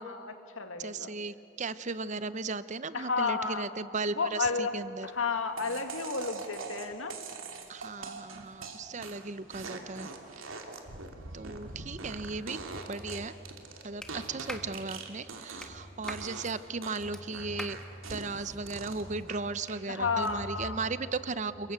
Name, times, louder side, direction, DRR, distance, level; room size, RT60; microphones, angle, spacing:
voice 1, 0.0-1.1 2.9-3.7 4.2-4.7 5.0-7.2 9.0-9.1 19.9-20.8, left 4 dB, 90° left, 6 dB, 2.1 m, -32 dB
voice 2, 0.8-5.1 7.7-10.5 11.3-13.4 13.8-17.8 18.1-21.7, right 3 dB, 35° right, 14 dB, 0.7 m, -36 dB
sound 1, 5.6-15.8 16.0-16.5 16.8-19.8 20.2-20.6, right 4 dB, 85° right, 2.8 m, -43 dB
sound 2, 12.7-14.7 15.2-16.3 16.6-19.3 19.6-21.1, equal, 30° left, 1.8 m, -48 dB
Clapping, 14.0-14.1 14.5-14.7 15.6-15.7 16.1-16.3 17.1-17.2 17.6-17.8, left 1 dB, 5° left, 1.3 m, -40 dB
29.5 x 22.0 x 8.2 m, 2.8 s
head